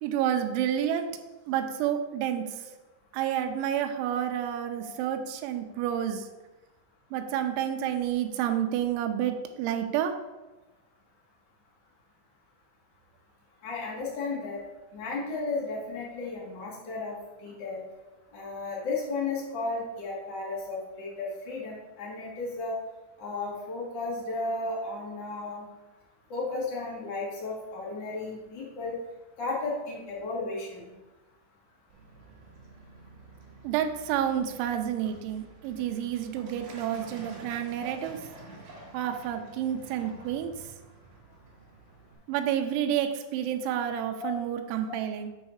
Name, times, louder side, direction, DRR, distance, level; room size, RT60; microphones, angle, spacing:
voice 1, 0.0-1.1 1.5-2.6 3.1-6.3 7.1-10.1 33.6-38.2 38.9-40.5 42.3-45.3, right 10 dB, 85° right, 5 dB, 3.0 m, -29 dB
voice 2, 13.6-14.6 14.9-17.1 17.4-17.8 18.3-22.7 23.2-25.6 26.3-29.0 29.4-30.9 44.2-44.3, left 3 dB, 65° left, -6 dB, 1.1 m, -34 dB
Truck, 31.9-42.2, right 2 dB, 55° right, 3.1 m, -49 dB
8.1 x 3.2 x 6.3 m, 1.1 s
omnidirectional pair, 5.4 m